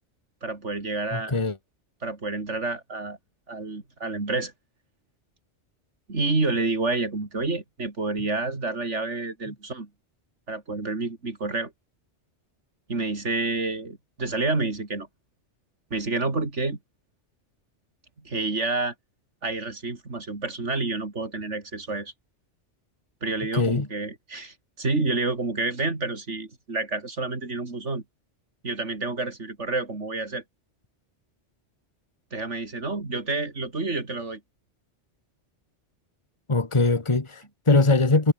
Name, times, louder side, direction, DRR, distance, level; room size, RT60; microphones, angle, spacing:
voice 1, 0.4-1.3 2.0-3.2 3.5-4.5 6.1-9.9 10.5-11.7 12.9-15.1 15.9-16.8 18.2-18.9 19.4-22.1 23.2-28.0 28.6-30.4 32.3-34.4, right 3 dB, 80° right, 3.7 m, -29 dB
voice 2, 1.1-1.6 23.5-23.9 36.5-38.3, left 3 dB, 25° left, 1.8 m, -21 dB
omnidirectional pair, 1.2 m